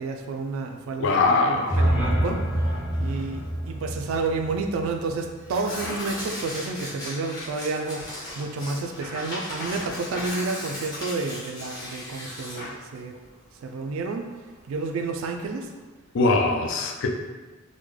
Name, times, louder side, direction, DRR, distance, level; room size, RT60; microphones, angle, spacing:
voice 1, 0.0-2.4 3.0-13.2 13.6-14.3 14.7-15.7, right 3 dB, 80° right, 3 dB, 0.3 m, -30 dB
voice 2, 1.0-1.8 16.1-17.1, left 3 dB, 65° left, 3 dB, 0.4 m, -22 dB
sound 1, 1.5-5.6, equal, 5° right, 0.5 m, -27 dB
Tearing, 1.6-15.8, left 1 dB, 20° left, 1.0 m, -38 dB
3.6 x 2.1 x 3.1 m, 1.3 s
head